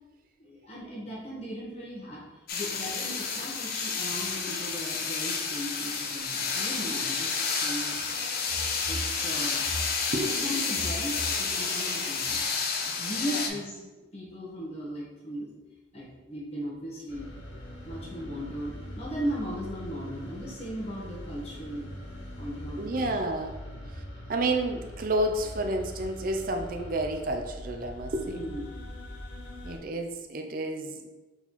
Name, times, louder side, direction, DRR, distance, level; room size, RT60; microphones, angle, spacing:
voice 1, 0.4-8.0 8.8-9.6 10.3-12.4 13.0-13.9 14.1-15.5 15.9-17.3 17.8-21.9 22.4-23.1 28.3-28.6, equal, 35° left, -6 dB, 1.0 m, -37 dB
sound 1, 2.5-13.5, left 5 dB, 55° left, 0.5 m, -30 dB
sound 2, 17.1-29.8, equal, 80° left, 0.8 m, -42 dB
voice 2, 22.8-23.6 23.8-24.0 24.3-28.5 29.6-31.1, right 1 dB, 50° right, 4 dB, 0.5 m, -30 dB
4.1 x 3.9 x 3.0 m, 1.1 s
head